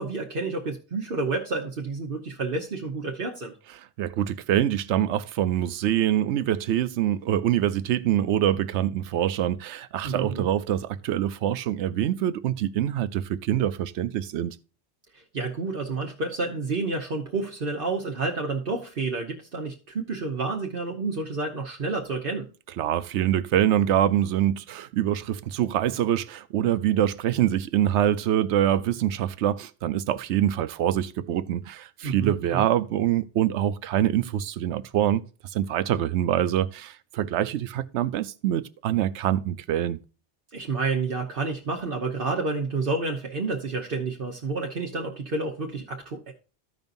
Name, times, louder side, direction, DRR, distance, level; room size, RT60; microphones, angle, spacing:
voice 1, 0.0-3.5 10.0-10.5 15.1-22.5 32.0-32.7 40.5-46.3, right 3 dB, 55° right, 1.1 m, -29 dB
voice 2, 4.0-14.6 22.8-35.2 35.5-40.0, right 11 dB, 85° right, 0.9 m, -25 dB
14.5 x 5.3 x 2.6 m
omnidirectional pair, 1.1 m